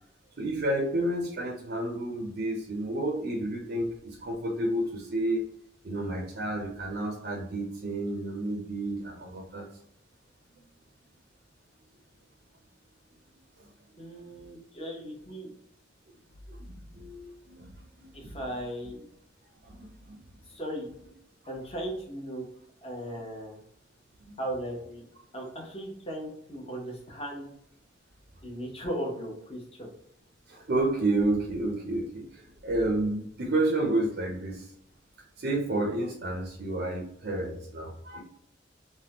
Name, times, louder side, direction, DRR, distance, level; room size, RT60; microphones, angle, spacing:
voice 1, 0.4-5.5 5.8-9.7 16.5-18.3 19.6-20.2 23.1-23.2 24.2-24.4 30.5-34.7 35.4-38.2, right 1 dB, 55° right, 1 dB, 0.5 m, -30 dB
voice 2, 14.0-15.5 18.1-19.1 20.5-20.9 21.5-22.4 22.8-23.6 24.4-25.0 25.3-27.5 28.4-29.9, right 1 dB, 30° left, -1 dB, 0.8 m, -37 dB
3.4 x 2.1 x 2.8 m, 0.73 s
head